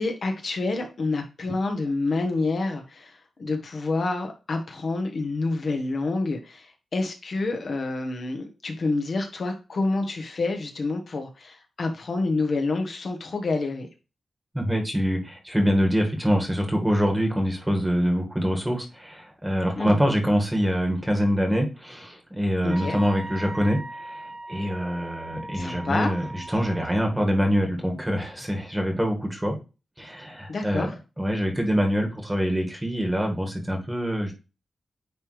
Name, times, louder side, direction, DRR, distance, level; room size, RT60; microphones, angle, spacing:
voice 1, 0.0-13.9 19.8-19.9 22.6-23.0 25.5-26.1 26.5-26.6 30.5-30.9, left 3 dB, 50° left, 4 dB, 1.1 m, -28 dB
voice 2, 14.5-29.6 30.0-30.9 31.2-34.3, equal, 10° right, 2 dB, 1.6 m, -25 dB
Wind instrument woodwind instrument, 22.7-27.1, right 1 dB, 65° right, 2.5 m, -39 dB
9.5 x 3.3 x 3.1 m, 0.29 s
wide cardioid pair, 125°, 0 cm